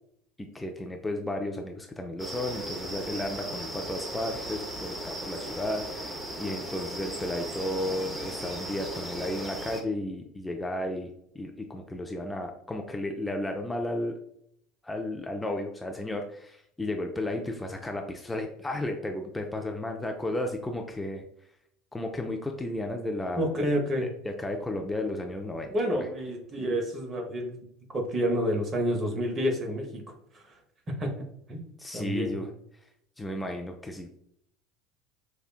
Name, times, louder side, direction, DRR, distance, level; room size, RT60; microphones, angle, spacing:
voice 1, 0.4-14.1 14.8-21.2 21.9-23.5 24.0-25.7 26.0-26.1 31.8-32.5 33.2-34.2, left 1 dB, 10° left, 3 dB, 0.4 m, -33 dB
sound 1, 2.2-9.8, right 1 dB, 10° right, 0.8 m, -37 dB
voice 2, 23.4-24.1 25.7-27.7 27.9-30.0 30.3-30.6 31.0-31.1 31.5-31.6 31.9-32.3, equal, 35° right, 2 dB, 1.0 m, -29 dB
5.0 x 2.2 x 2.4 m, 0.71 s
hypercardioid pair, 75°, 0 cm